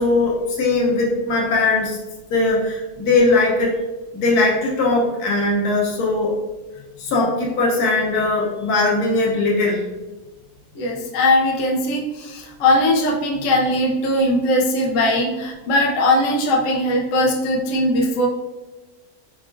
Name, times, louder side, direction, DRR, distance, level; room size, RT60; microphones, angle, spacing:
voice 1, 0.0-2.0 2.3-3.7 4.1-6.3 7.0-9.8, left 3 dB, 90° left, -3 dB, 1.3 m, -19 dB
voice 2, 10.7-18.3, left 1 dB, 65° left, -1 dB, 0.9 m, -19 dB
4.7 x 2.4 x 2.4 m, 1.1 s
omnidirectional pair, 1.6 m